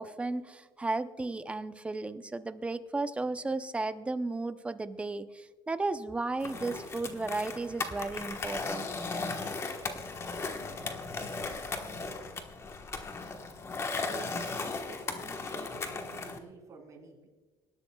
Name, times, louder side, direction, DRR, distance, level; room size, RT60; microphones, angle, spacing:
voice 1, 0.0-8.9, right 3 dB, 15° right, 11 dB, 0.6 m, -34 dB
Skateboard, 6.4-16.4, left 3 dB, 30° left, 1.2 m, -37 dB
voice 2, 14.0-17.3, right 4 dB, 35° right, 0 dB, 3.7 m, -50 dB
25.5 x 12.0 x 2.3 m, 1.3 s
cardioid pair, 125°, 9 cm